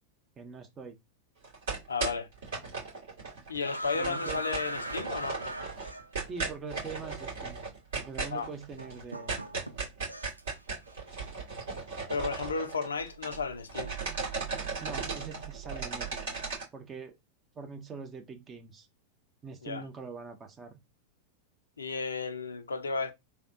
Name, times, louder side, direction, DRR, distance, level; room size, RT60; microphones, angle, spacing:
voice 1, 0.4-1.0 3.8-4.4 6.3-7.6 7.9-9.4 14.8-16.3 16.7-17.1 17.6-18.9 19.4-20.8, right 5 dB, 25° right, 0.6 m, -43 dB
sound 1, 1.4-3.6 3.8-13.4 13.7-16.6, right 4 dB, 60° right, 2.0 m, -36 dB
voice 2, 1.9-2.3 3.5-5.4 8.3-8.5 12.1-13.9 19.6-19.8 21.8-23.1, left 4 dB, 70° left, 0.5 m, -33 dB
sound 2, 3.6-6.4 7.5-7.6 8.8-10.6 10.9-11.3, right 1 dB, 85° right, 0.4 m, -39 dB
3.3 x 2.3 x 2.7 m
figure-of-eight pair, 90°, 0 cm